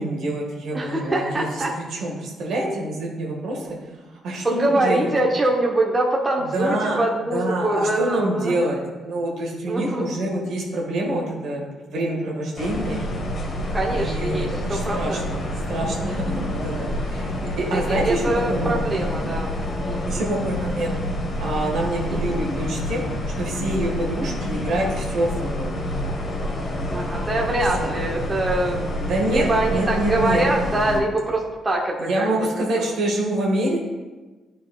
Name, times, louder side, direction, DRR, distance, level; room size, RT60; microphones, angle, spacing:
voice 1, 0.0-3.8 4.2-5.1 6.4-7.0 7.3-13.0 13.9-15.4 15.7-17.3 17.6-18.7 20.1-21.0 21.4-23.0 23.4-26.1 27.8-27.9 29.0-30.4 32.0-33.8, right 1 dB, 75° right, -1 dB, 1.6 m, -26 dB
voice 2, 0.7-1.7 4.4-8.6 9.7-10.2 13.7-15.3 15.8-16.2 17.7-20.3 22.1-22.3 26.9-28.9 29.3-32.3 32.7-32.9, right 1 dB, 25° right, -1 dB, 0.8 m, -24 dB
sound 1, 12.6-31.0, left 1 dB, 40° left, 1.2 m, -28 dB
10.5 x 4.1 x 2.3 m, 1.2 s
cardioid pair, 90°, 0 cm